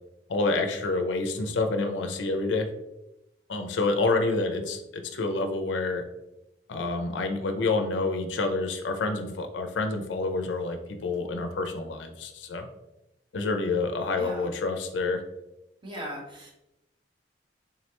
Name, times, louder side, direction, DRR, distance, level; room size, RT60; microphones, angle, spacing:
voice 1, 0.3-2.7 3.5-6.0 6.7-12.7 13.3-15.2, left 3 dB, 75° left, 5 dB, 0.5 m, -28 dB
voice 2, 14.1-14.5 15.8-16.5, equal, 25° right, -2 dB, 1.0 m, -38 dB
3.7 x 3.2 x 2.9 m, 0.89 s
head